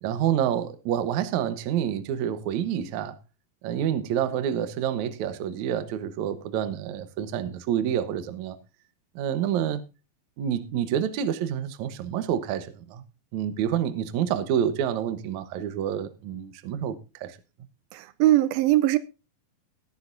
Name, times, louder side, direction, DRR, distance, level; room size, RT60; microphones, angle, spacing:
voice 1, 0.0-3.2 3.6-8.6 9.2-9.8 10.4-13.0 13.3-17.4, right 9 dB, 65° right, 2.1 m, -28 dB
voice 2, 17.9-19.0, right 15 dB, 80° right, 2.5 m, -21 dB
19.0 x 9.9 x 2.6 m
omnidirectional pair, 4.2 m